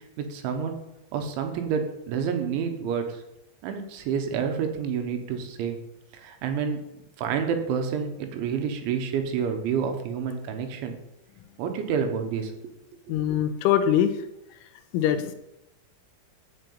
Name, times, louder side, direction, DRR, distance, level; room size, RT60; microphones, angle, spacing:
voice 1, 0.2-0.8 1.1-3.2 3.6-5.8 6.1-6.8 7.2-11.0 11.6-12.7, right 7 dB, 75° right, 6 dB, 3.5 m, -29 dB
voice 2, 13.1-14.1 14.9-15.4, left 10 dB, 85° left, 9 dB, 3.4 m, -22 dB
9.4 x 6.0 x 8.5 m, 0.88 s
omnidirectional pair, 5.6 m